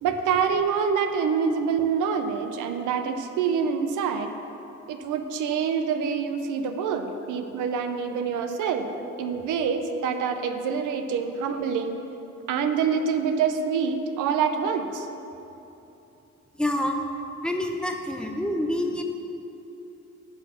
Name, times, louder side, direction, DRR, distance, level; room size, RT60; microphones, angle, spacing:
voice 1, 0.0-4.3 4.9-8.9 9.2-12.0 12.5-15.1, right 6 dB, 90° right, 7 dB, 0.7 m, -26 dB
voice 2, 16.6-17.0 17.4-19.0, left 1 dB, 5° left, 2 dB, 0.9 m, -27 dB
10.5 x 4.4 x 6.7 m, 2.9 s
cardioid pair, 90°, 30 cm